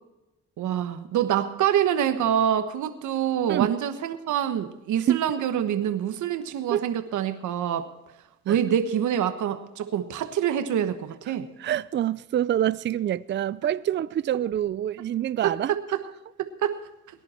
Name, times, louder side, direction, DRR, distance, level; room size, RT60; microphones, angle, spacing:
voice 1, 0.6-7.9 8.5-11.5 15.4-16.0 16.4-16.8, right 9 dB, 75° right, 1.3 m, -26 dB
voice 2, 11.6-15.8, right 11 dB, 40° right, 0.4 m, -26 dB
18.5 x 11.0 x 4.4 m
cardioid pair, 90°, 30 cm